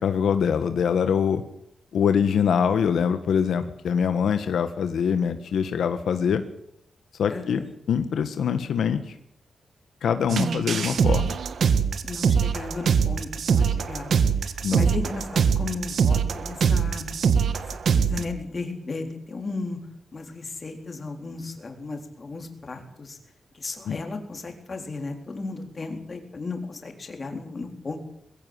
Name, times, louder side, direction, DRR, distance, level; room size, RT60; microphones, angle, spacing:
voice 1, 0.0-1.4 1.9-6.4 7.2-7.6 7.9-9.1 10.0-11.4 14.6-14.8 23.9-24.0, left 7 dB, 85° left, 9 dB, 1.6 m, -24 dB
voice 2, 7.3-7.7 10.7-10.9 12.0-14.1 14.4-17.1 17.7-19.8 20.1-23.2 23.5-28.0, left 3 dB, 30° left, 4 dB, 3.8 m, -35 dB
sound 1, 10.3-18.2, right 6 dB, 60° right, 1.6 m, -23 dB
22.0 x 16.0 x 9.7 m, 0.73 s
wide cardioid pair, 170°, 0 cm